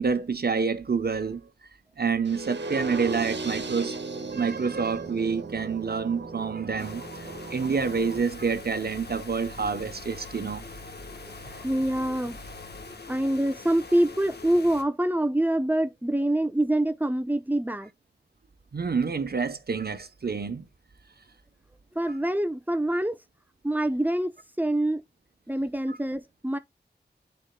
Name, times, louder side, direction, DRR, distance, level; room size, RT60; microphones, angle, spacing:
voice 1, 0.0-1.4 2.0-4.0 4.3-7.0 7.5-10.7 18.7-20.6 25.9-26.0, right 5 dB, 65° right, 1.0 m, -28 dB
sound 1, 2.3-8.2, right 3 dB, 80° right, 1.3 m, -36 dB
sound 2, 6.8-14.8, left 4 dB, 70° left, 1.3 m, -44 dB
Engine, 7.8-12.9, left 1 dB, 30° left, 3.5 m, -47 dB
voice 2, 11.4-12.4 12.9-17.9 21.9-23.2 23.6-25.0 25.5-26.6, right 1 dB, 10° right, 0.8 m, -26 dB
9.7 x 4.4 x 2.3 m
wide cardioid pair, 90°, 18 cm